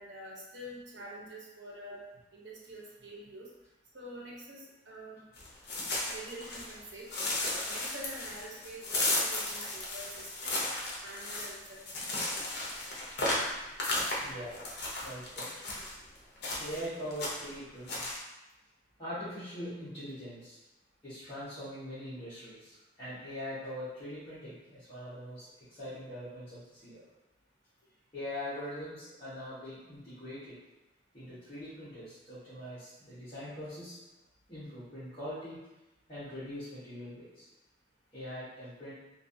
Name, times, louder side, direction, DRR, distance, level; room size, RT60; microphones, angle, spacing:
voice 1, 0.0-2.0 2.3-3.5 3.9-5.2 6.1-7.3 7.6-10.5 11.0-11.8 12.1-12.5, right 1 dB, 70° right, -3 dB, 0.8 m, -46 dB
sound 1, 5.4-6.8 7.1-15.9 16.4-16.9 17.1-17.5 17.9-18.2, left 2 dB, 60° left, 0.7 m, -34 dB
voice 2, 14.2-14.6 15.0-15.8 16.6-18.1 19.0-20.6 21.0-27.0 28.1-30.6 31.1-34.0 34.5-35.6 36.1-37.4 38.1-38.9, equal, 25° left, -17 dB, 1.2 m, -42 dB
3.1 x 2.6 x 2.6 m, 0.99 s
head